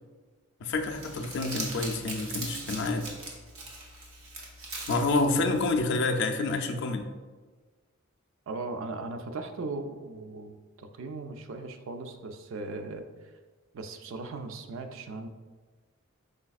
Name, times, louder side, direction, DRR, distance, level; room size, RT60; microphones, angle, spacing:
voice 1, 0.6-3.1 4.9-7.1, left 3 dB, 55° left, 5 dB, 0.4 m, -28 dB
Crumpling crinkling, 0.7-5.8, right 2 dB, 85° right, 0.9 m, -40 dB
voice 2, 8.5-13.1 13.7-15.3, right 3 dB, 65° right, 7 dB, 0.4 m, -38 dB
5.1 x 4.0 x 2.3 m, 1.4 s
head